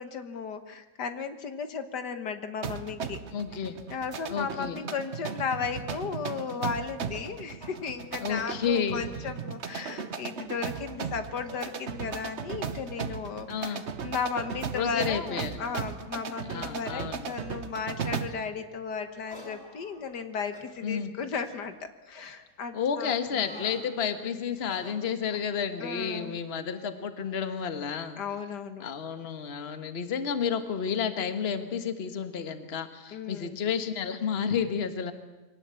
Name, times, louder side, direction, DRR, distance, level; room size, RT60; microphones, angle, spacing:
voice 1, 0.0-3.2 3.9-21.7 22.1-23.5 25.8-26.4 28.2-28.8 33.1-33.6, left 5 dB, 75° left, 9 dB, 1.9 m, -35 dB
sound 1, 2.6-18.5, right 6 dB, 45° right, 1.1 m, -37 dB
voice 2, 3.3-3.8 4.3-4.8 8.2-9.0 13.5-13.9 14.7-15.6 16.5-17.3 20.8-21.1 22.7-28.2 28.8-35.1, left 7 dB, 40° left, 9 dB, 1.5 m, -31 dB
sound 2, 6.5-6.7 7.1-7.3 7.6-7.8 8.2-8.6 9.0-9.1 9.6-10.1 10.7-11.0 11.4-11.7 12.0-12.2 12.7-12.9 13.4-13.7 14.1-14.2 14.8-14.9 15.7-16.0 16.5-16.7 17.2-17.4 18.2-18.5 19.3-20.2 20.5-20.7 21.3-21.6 22.1-22.3 23.1-23.8 24.6-25.5, left 1 dB, 10° left, 4.3 m, -49 dB
24.0 x 18.0 x 8.3 m, 1.2 s
omnidirectional pair, 1.8 m